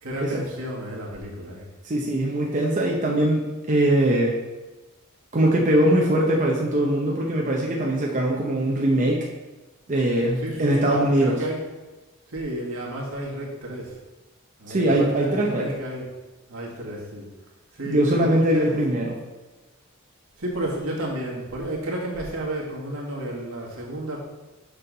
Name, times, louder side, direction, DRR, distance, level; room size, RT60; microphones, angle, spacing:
voice 1, 0.0-1.7 10.3-11.7 12.3-14.0 14.6-16.1 16.5-17.3 17.7-18.8 20.4-24.2, right 1 dB, 75° right, -3 dB, 1.7 m, -32 dB
voice 2, 1.8-4.3 5.3-9.2 9.9-11.4 14.7-15.6 17.9-19.1, right 1 dB, 35° right, -2 dB, 0.8 m, -21 dB
6.8 x 5.8 x 3.9 m, 1.1 s
head